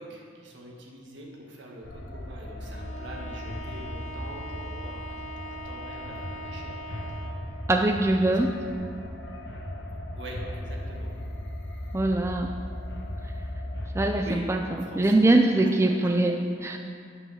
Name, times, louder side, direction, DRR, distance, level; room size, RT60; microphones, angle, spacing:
voice 1, 0.0-6.8 10.2-11.1 14.1-15.1 15.6-15.7, right 1 dB, 75° right, -1 dB, 1.7 m, -43 dB
sound 1, 1.8-13.9, left 1 dB, 75° left, 1.1 m, -37 dB
Bowed string instrument, 2.7-7.5, equal, 35° left, 0.7 m, -42 dB
voice 2, 7.7-8.5 11.9-12.5 13.9-16.8, right 2 dB, 15° right, 4 dB, 0.4 m, -23 dB
9.7 x 5.5 x 6.5 m, 2.3 s
head